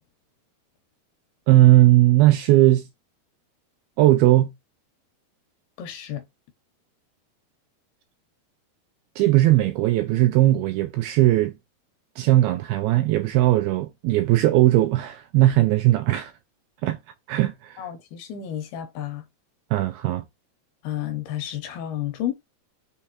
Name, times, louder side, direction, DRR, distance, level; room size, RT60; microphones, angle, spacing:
voice 1, 1.5-2.8 4.0-4.5 9.2-11.5 12.2-16.3 16.8-17.0 17.3-17.8 19.7-20.2, right 16 dB, 85° right, 2.2 m, -18 dB
voice 2, 5.8-6.3 17.8-19.3 20.8-22.3, left 11 dB, 80° left, 2.4 m, -31 dB
6.4 x 2.3 x 2.9 m
omnidirectional pair, 4.8 m